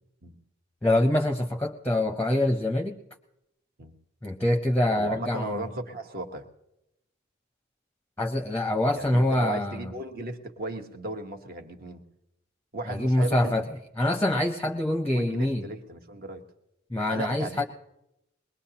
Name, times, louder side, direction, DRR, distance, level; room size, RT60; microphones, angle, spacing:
voice 1, 0.8-3.0 4.2-5.6 8.2-9.9 12.9-13.6 14.0-15.6 16.9-17.6, left 1 dB, 10° left, 5 dB, 0.7 m, -25 dB
voice 2, 4.9-6.5 8.9-12.0 12.7-13.7 15.1-16.4 17.1-17.6, right 2 dB, 50° right, 6 dB, 1.2 m, -35 dB
22.0 x 20.5 x 2.9 m, 0.86 s
head